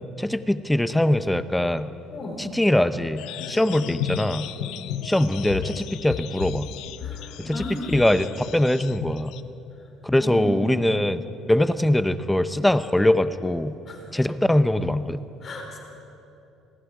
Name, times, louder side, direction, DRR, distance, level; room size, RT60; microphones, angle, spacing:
voice 1, 0.2-1.9 2.4-4.5 5.0-6.7 7.4-9.3 10.0-11.2 11.5-13.7 14.1-15.2, left 1 dB, 5° left, 12 dB, 0.8 m, -22 dB
voice 2, 2.1-2.5 3.6-4.0 4.6-4.8 7.0-8.3 10.2-10.9 13.9-14.0 15.4-15.8, left 1 dB, 35° left, 2 dB, 4.4 m, -35 dB
sound 1, 3.2-9.4, left 11 dB, 75° left, 0.7 m, -34 dB
27.5 x 20.0 x 5.0 m, 2.9 s
cardioid pair, 115°, 0 cm